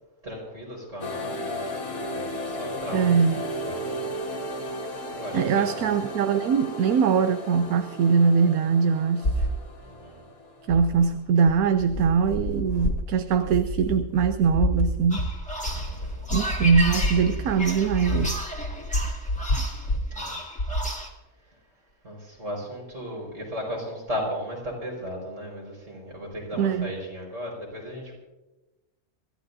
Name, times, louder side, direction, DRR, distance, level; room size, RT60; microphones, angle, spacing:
voice 1, 0.2-4.1 5.1-5.9 9.8-10.2 15.8-16.2 20.1-20.4 22.0-28.1, equal, 55° right, -2 dB, 5.5 m, -36 dB
sound 1, 1.0-11.3, equal, 70° left, 2.3 m, -35 dB
voice 2, 2.9-3.4 5.3-9.5 10.7-15.3 16.3-18.5 26.6-26.9, right 6 dB, 75° right, 9 dB, 1.1 m, -22 dB
sound 2, 9.2-9.6 10.7-11.1 11.5-20.1 20.6-20.9, left 1 dB, 55° left, 2.2 m, -29 dB
sound 3, 15.1-21.1, equal, 5° left, 1.7 m, -34 dB
26.5 x 14.5 x 2.7 m, 1.1 s
omnidirectional pair, 1.6 m